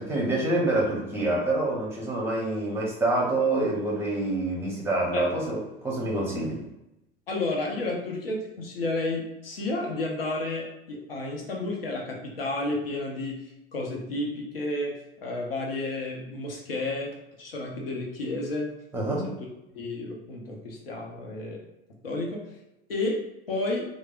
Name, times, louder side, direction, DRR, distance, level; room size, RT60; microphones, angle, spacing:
voice 1, 0.0-6.6 18.9-19.3, right 2 dB, 10° right, -3 dB, 1.0 m, -26 dB
voice 2, 7.3-18.7 19.2-19.3 19.7-21.6 22.0-22.4 22.9-23.8, left 2 dB, 80° left, -1 dB, 0.7 m, -31 dB
3.2 x 2.0 x 2.4 m, 0.89 s
figure-of-eight pair, 75°, 29 cm